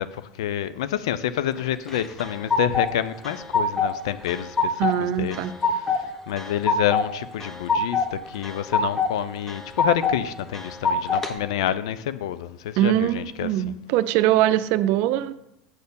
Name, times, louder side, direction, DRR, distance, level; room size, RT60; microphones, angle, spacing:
voice 1, 0.0-5.4 5.7-13.6, left 11 dB, 80° left, 0.5 m, -28 dB
sound 1, 1.9-2.9 3.2-4.0 4.3-5.0 5.3-6.0 6.4-7.1 7.4-8.1 8.4-9.1 9.5-10.2 10.5-11.3, left 4 dB, 15° left, 1.1 m, -23 dB
voice 2, 4.8-5.5 12.8-15.3, right 13 dB, 65° right, 0.5 m, -22 dB
7.9 x 4.3 x 7.0 m
hypercardioid pair, 95°, 3 cm